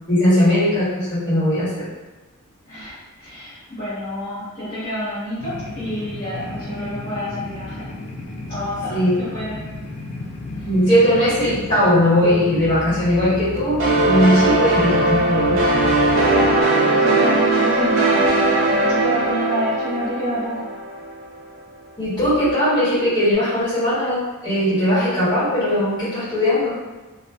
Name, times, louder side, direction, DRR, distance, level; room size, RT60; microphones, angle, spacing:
voice 1, 0.1-1.9 8.9-9.1 10.6-15.6 22.0-26.8, equal, 20° left, -12 dB, 1.3 m, -19 dB
voice 2, 2.7-7.9 8.5-9.6 16.3-20.7, equal, 35° left, -14 dB, 1.1 m, -28 dB
sound 1, 5.4-16.6, left 1 dB, 65° left, 0.4 m, -33 dB
sound 2, 13.8-21.3, right 2 dB, 60° right, 0.4 m, -19 dB
2.5 x 2.4 x 2.2 m, 1.2 s
head